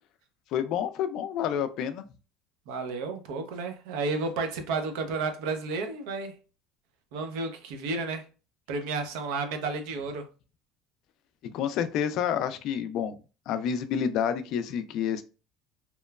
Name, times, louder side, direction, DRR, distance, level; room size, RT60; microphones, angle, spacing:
voice 1, 0.5-2.0 11.5-13.2 13.5-15.2, left 8 dB, 60° left, 0.3 m, -29 dB
voice 2, 2.7-6.4 7.1-8.2 8.7-10.2, right 3 dB, 80° right, 0.5 m, -32 dB
2.9 x 2.1 x 2.2 m
supercardioid pair, 110°, 0 cm